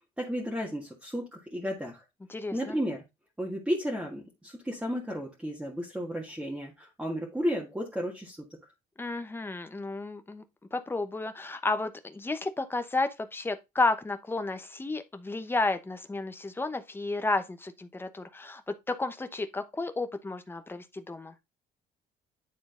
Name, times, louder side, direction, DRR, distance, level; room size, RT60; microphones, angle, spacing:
voice 1, 0.2-2.0 2.5-3.0 3.4-8.5, equal, 5° right, 1.7 m, -33 dB
voice 2, 2.3-2.8 9.0-10.4 10.7-21.3, left 3 dB, 15° left, 0.9 m, -32 dB
9.5 x 3.8 x 3.8 m
cardioid pair, 110°, 17 cm